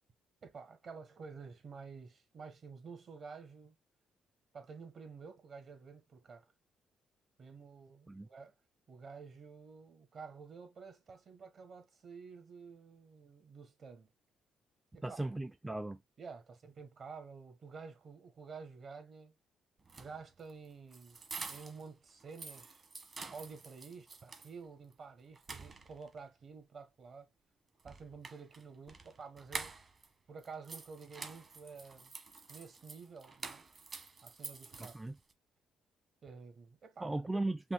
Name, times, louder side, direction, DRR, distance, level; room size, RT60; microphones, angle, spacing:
voice 1, 0.4-3.8 4.5-6.5 7.4-8.5 8.9-14.1 14.9-15.2 16.2-19.3 20.0-21.2 21.5-22.8 23.3-27.3 27.8-29.7 30.3-32.1 32.5-33.6 34.2-34.9 36.2-37.1, right 5 dB, 50° right, 1.5 m, -50 dB
voice 2, 15.0-16.0 34.9-35.1 37.0-37.7, right 2 dB, 10° right, 0.4 m, -37 dB
sound 1, 19.8-21.9 22.2-24.5 24.9-25.0 25.4-26.2 27.8-30.1 30.4-35.3, right 4 dB, 35° right, 1.2 m, -48 dB
5.5 x 2.4 x 3.7 m
cardioid pair, 90°, 0 cm